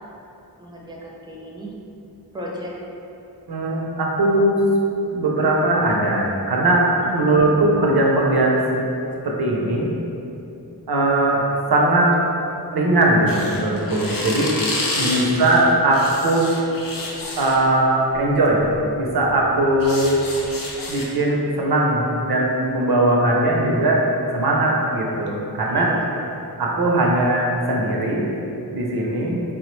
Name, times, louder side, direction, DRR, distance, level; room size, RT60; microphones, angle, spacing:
voice 1, 0.6-1.7 2.3-2.7 7.0-7.4 14.9-15.3 25.7-26.1, equal, 10° right, -3 dB, 0.5 m, -35 dB
voice 2, 3.5-4.6 5.1-8.7 9.2-9.9 10.9-11.4 11.7-12.1 12.7-14.5 14.9-16.5 17.4-18.6 19.0-20.2 20.9-24.1 24.3-25.9 26.6-28.3 28.7-29.4, right 1 dB, 80° right, -2 dB, 0.5 m, -19 dB
sound 1, 13.3-17.7 18.6-18.8 19.2-21.1, left 1 dB, 65° left, 0.5 m, -29 dB
3.4 x 2.1 x 3.0 m, 2.8 s
wide cardioid pair, 40°, 37 cm